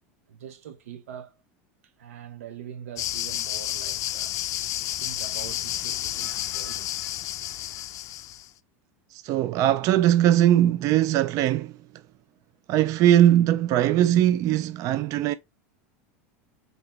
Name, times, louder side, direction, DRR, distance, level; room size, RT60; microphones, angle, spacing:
voice 1, 0.3-1.4 1.8-4.4 5.0-7.0, right 9 dB, 90° right, 0.6 m, -43 dB
sound 1, 3.0-8.5, left 13 dB, 50° left, 0.4 m, -31 dB
voice 2, 9.1-11.8 12.7-15.3, right 12 dB, 50° right, 0.4 m, -20 dB
4.1 x 2.9 x 4.1 m
supercardioid pair, 105°, 7 cm